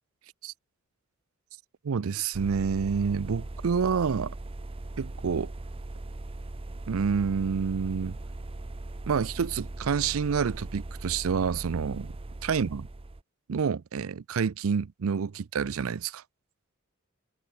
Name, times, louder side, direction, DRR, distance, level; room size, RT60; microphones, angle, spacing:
voice 1, 1.8-4.3 5.0-5.5 6.9-8.2 9.1-12.1 12.4-12.9 13.5-16.2, right 6 dB, 80° right, 0.5 m, -28 dB
sound 1, 2.3-13.2, right 2 dB, 25° right, 0.6 m, -39 dB
head